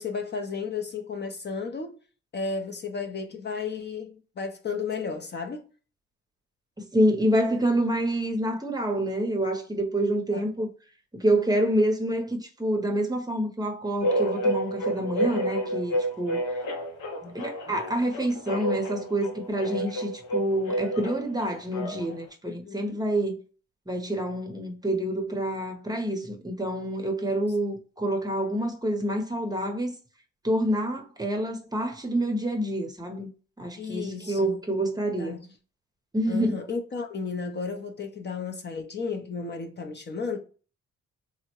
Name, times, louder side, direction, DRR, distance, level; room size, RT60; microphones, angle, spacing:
voice 1, 0.0-2.0 2.3-5.6 10.3-10.4 22.4-23.0 33.8-34.6 35.2-35.5 36.3-40.4, left 5 dB, 35° left, 0.5 m, -33 dB
voice 2, 6.8-10.7 11.1-16.4 17.2-23.4 23.9-29.9 30.4-33.3 33.6-35.4 36.1-36.6, right 1 dB, 15° right, 0.7 m, -27 dB
sound 1, 14.0-22.2, right 1 dB, 85° left, 0.9 m, -30 dB
3.6 x 2.0 x 2.9 m
cardioid pair, 90°, 30 cm